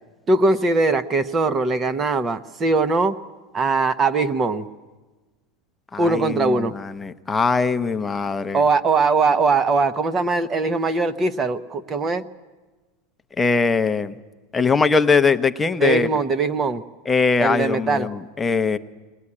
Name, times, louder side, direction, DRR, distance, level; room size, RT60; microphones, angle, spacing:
voice 1, 0.3-3.2 3.5-4.7 6.0-6.8 8.5-12.3 15.8-16.8 17.4-18.1, right 3 dB, 20° right, 13 dB, 0.8 m, -21 dB
voice 2, 5.9-8.6 13.4-14.2 14.5-16.1 17.1-18.8, left 4 dB, 10° left, 9 dB, 0.7 m, -21 dB
21.5 x 19.0 x 9.8 m, 1.2 s
supercardioid pair, 145°, 0 cm